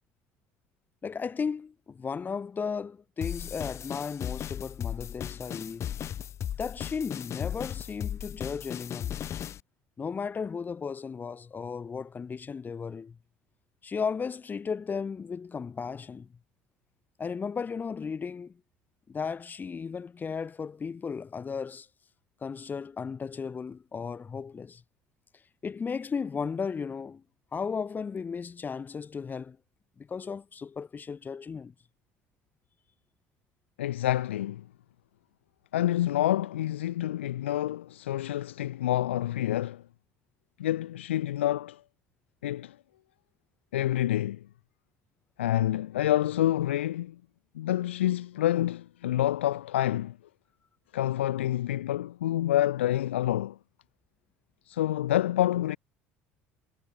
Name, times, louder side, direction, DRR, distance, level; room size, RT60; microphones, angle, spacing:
voice 1, 1.0-6.0 6.6-9.2 10.0-13.2 13.8-16.3 17.2-18.6 19.1-21.9 22.4-24.8 25.6-27.2 27.5-29.6 30.0-31.7, left 5 dB, 30° left, 1.3 m, -35 dB
sound 1, 3.2-9.6, left 10 dB, 50° left, 3.6 m, -36 dB
voice 2, 33.8-34.7 35.7-39.8 40.6-41.8 42.4-42.8 43.7-44.4 45.4-47.2 47.5-50.2 50.9-53.6 54.7-55.8, left 13 dB, 90° left, 0.6 m, -27 dB
hypercardioid pair, 75°, 6 cm